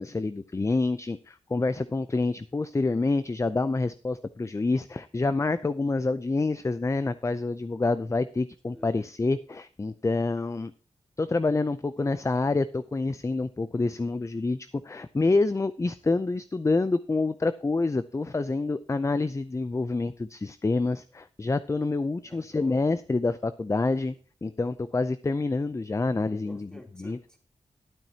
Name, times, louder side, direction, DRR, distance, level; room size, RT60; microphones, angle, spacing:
voice 1, 0.0-10.7 11.2-24.1 24.4-26.7 27.0-27.2, left 3 dB, 25° left, 13 dB, 0.5 m, -27 dB
voice 2, 22.2-22.9 23.9-24.2 26.4-27.4, equal, 5° left, 0 dB, 3.3 m, -49 dB
12.0 x 8.8 x 2.8 m, 0.41 s
cardioid pair, 60°, 12 cm